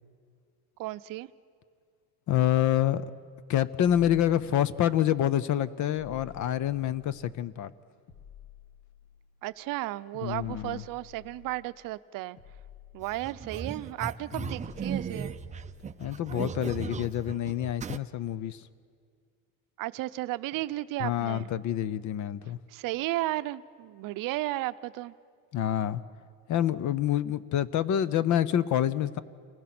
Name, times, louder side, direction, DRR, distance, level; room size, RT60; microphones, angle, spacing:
voice 1, 0.8-1.3 9.4-12.4 12.9-15.3 19.8-21.5 22.7-25.1, right 17 dB, 60° right, 14 dB, 0.7 m, -34 dB
voice 2, 2.3-3.0 3.5-7.7 10.2-10.8 14.3-14.5 16.0-18.7 21.0-22.6 25.5-26.0 26.5-29.2, left 11 dB, 50° left, 17 dB, 0.7 m, -27 dB
sound 1, 8.1-9.5 10.2-11.8 12.4-13.8 14.5-16.1, left 9 dB, 85° left, 2.3 m, -52 dB
sound 2, 13.0-18.0, right 6 dB, 20° right, 0.5 m, -37 dB
28.5 x 19.5 x 6.1 m, 2.1 s
cardioid pair, 120°, 37 cm